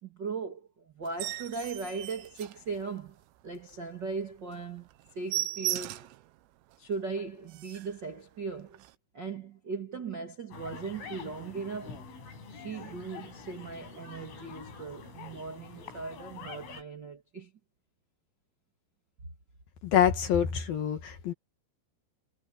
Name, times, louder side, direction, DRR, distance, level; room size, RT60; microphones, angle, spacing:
voice 1, 0.0-3.2 3.4-4.9 5.1-6.1 6.8-8.8 9.1-11.9 12.5-17.5, right 4 dB, 45° right, 1.4 m, -38 dB
sound 1, 1.0-3.2 3.6-3.8 4.1-4.2 4.5-4.7 4.9-6.2 6.7-6.8 7.2-7.3 7.5-8.0 8.7-8.9, right 15 dB, 90° right, 3.6 m, -36 dB
sound 2, 10.5-16.8, left 5 dB, 85° left, 10.5 m, -46 dB
voice 2, 19.8-21.3, left 9 dB, 60° left, 2.9 m, -26 dB
omnidirectional pair, 5.6 m